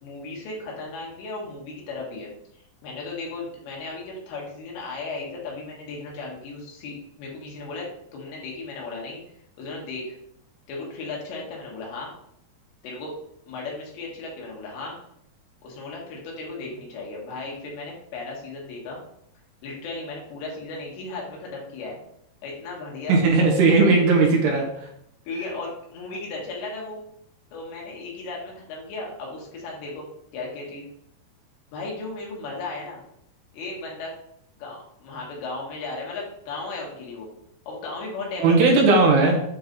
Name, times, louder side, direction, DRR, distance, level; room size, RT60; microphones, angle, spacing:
voice 1, 0.0-2.3 2.8-9.2 9.6-10.2 10.7-12.1 12.8-13.2 13.5-15.0 15.6-19.0 19.6-22.0 22.4-23.5 25.3-27.0 27.5-30.1 30.3-30.9 31.7-33.0 33.5-34.1 34.6-37.3 37.7-38.8, left 3 dB, 80° left, -2 dB, 3.7 m, -35 dB
voice 2, 23.1-24.7 38.4-39.4, right 3 dB, 75° right, -1 dB, 3.2 m, -17 dB
8.5 x 3.2 x 3.9 m, 0.73 s
omnidirectional pair, 5.1 m